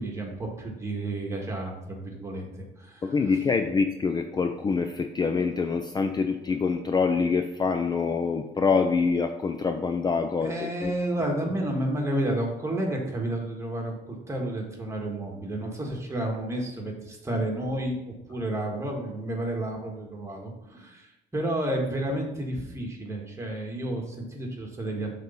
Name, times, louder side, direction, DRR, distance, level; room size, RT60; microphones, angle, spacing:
voice 1, 0.0-3.1 10.4-25.2, right 1 dB, 15° right, 0 dB, 1.6 m, -31 dB
voice 2, 3.0-10.9, left 5 dB, 25° left, 6 dB, 0.5 m, -25 dB
6.4 x 4.0 x 5.5 m, 0.95 s
cardioid pair, 110°, 17 cm